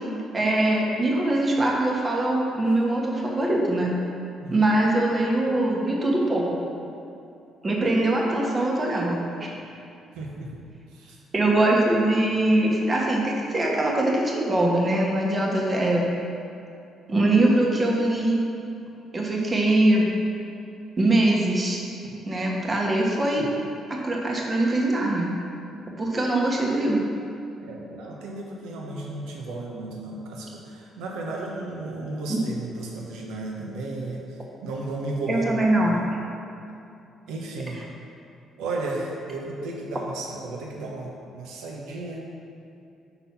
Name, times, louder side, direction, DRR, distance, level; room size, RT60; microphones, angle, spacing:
voice 1, 0.3-3.9 4.5-6.6 7.6-9.5 11.3-16.1 17.1-18.4 19.1-20.1 21.0-21.8 22.3-23.5 24.0-25.3 26.0-27.1 32.3-32.4 35.3-36.2, right 1 dB, 30° right, -2 dB, 1.2 m, -22 dB
voice 2, 10.1-10.5 10.9-11.2 23.3-23.5 25.8-25.9 27.6-34.2 34.6-36.1 37.3-37.8 38.6-42.2, right 2 dB, 85° right, -1 dB, 0.9 m, -34 dB
5.9 x 4.0 x 5.7 m, 2.6 s
cardioid pair, 85°, 0 cm